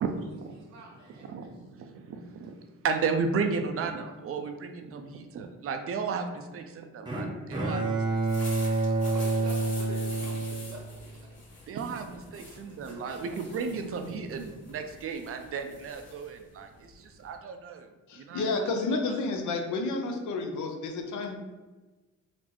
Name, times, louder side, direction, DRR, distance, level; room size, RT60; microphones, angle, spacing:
voice 1, 0.0-0.6 1.1-2.6 2.8-8.2 8.8-9.0 11.7-18.7 19.1-19.2, right 5 dB, 50° right, 6 dB, 0.4 m, -34 dB
voice 2, 0.5-1.5 9.0-11.3 12.5-13.4, right 1 dB, 70° right, 0 dB, 0.9 m, -47 dB
Bowed string instrument, 7.1-11.3, right 3 dB, 15° right, 0.7 m, -28 dB
sound 1, 8.1-17.4, left 2 dB, 55° left, 1.5 m, -47 dB
voice 3, 18.1-21.4, left 3 dB, 75° left, 3 dB, 0.6 m, -30 dB
4.1 x 2.1 x 2.9 m, 1.2 s
cardioid pair, 90°, 30 cm